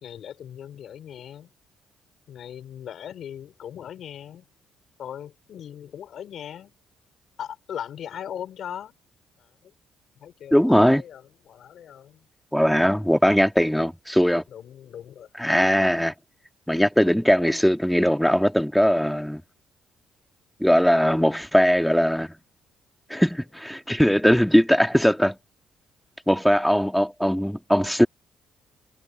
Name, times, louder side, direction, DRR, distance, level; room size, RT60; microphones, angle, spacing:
voice 1, 0.0-1.5 2.3-4.4 5.0-6.7 7.4-8.9 9.4-9.7 10.2-12.3 14.5-15.3, left 9 dB, 65° left, 3.6 m, -39 dB
voice 2, 10.5-11.0 12.5-14.4 15.4-16.1 16.7-19.4 20.6-22.3 23.1-25.4 26.3-28.1, equal, ahead, 2.1 m, -20 dB
supercardioid pair, 75°, 0 cm